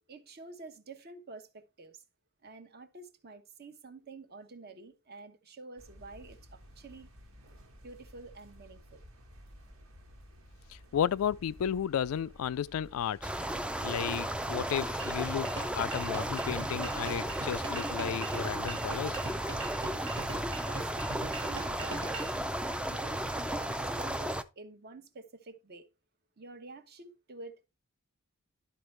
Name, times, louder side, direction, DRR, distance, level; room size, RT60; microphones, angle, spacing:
voice 1, 0.1-2.0 2.4-7.1 7.8-9.0 20.7-22.3 22.9-25.9 26.4-27.7, right 3 dB, 50° right, 0.9 m, -49 dB
sound 1, 5.8-20.9, equal, 85° right, 1.5 m, -55 dB
voice 2, 10.7-13.3 13.8-19.2, left 8 dB, 85° left, 0.3 m, -33 dB
sound 2, 13.2-24.4, right 1 dB, 5° right, 0.3 m, -34 dB
sound 3, 15.0-22.4, right 3 dB, 65° right, 1.5 m, -43 dB
12.0 x 4.3 x 3.2 m
head